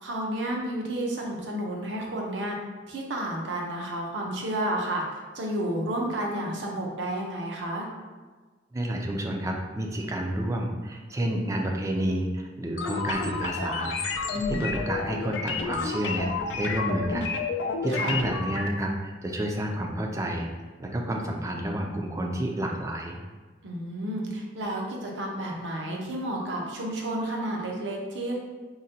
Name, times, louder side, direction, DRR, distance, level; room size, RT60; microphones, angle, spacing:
voice 1, 0.0-2.6 2.9-5.0 5.3-7.9 14.3-14.6 17.9-18.2 23.6-28.4, right 1 dB, 85° right, -1 dB, 0.6 m, -31 dB
voice 2, 8.7-14.0 14.5-17.3 17.6-20.5 20.8-23.2, right 1 dB, 15° right, 1 dB, 0.3 m, -30 dB
sound 1, 12.8-18.7, left 4 dB, 80° left, 0.3 m, -31 dB
3.8 x 2.1 x 2.7 m, 1.3 s
head